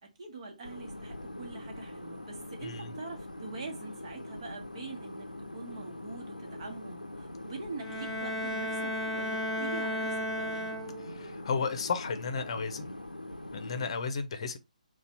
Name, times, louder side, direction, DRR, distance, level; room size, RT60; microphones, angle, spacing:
voice 1, 0.0-10.7, right 3 dB, 40° right, 1.2 m, -44 dB
sound 1, 0.6-13.9, left 1 dB, 90° left, 0.5 m, -43 dB
voice 2, 2.6-2.9 11.0-12.9 13.5-14.6, left 5 dB, 45° left, 0.7 m, -33 dB
Bowed string instrument, 7.8-11.3, equal, 5° right, 0.6 m, -34 dB
3.9 x 2.4 x 4.2 m
figure-of-eight pair, 135°, 4 cm